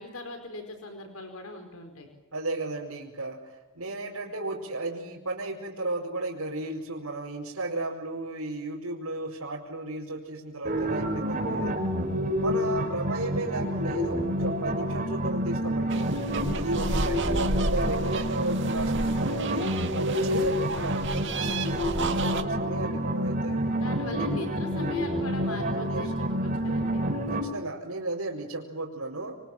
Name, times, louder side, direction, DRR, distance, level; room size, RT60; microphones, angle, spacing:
voice 1, 0.0-2.1 16.7-17.0 22.2-22.8 23.8-26.1 26.4-27.0, left 2 dB, 80° left, 6 dB, 4.8 m, -40 dB
voice 2, 2.3-11.7 12.4-16.1 16.5-19.7 19.9-21.5 21.9-23.6 24.1-24.3 25.5-26.3 27.3-29.3, right 2 dB, 80° right, -4 dB, 5.1 m, -34 dB
sound 1, 10.6-27.4, equal, 40° right, 3.7 m, -28 dB
sound 2, 15.9-22.4, right 2 dB, 55° right, 2.2 m, -32 dB
28.0 x 24.5 x 7.5 m, 1.0 s
head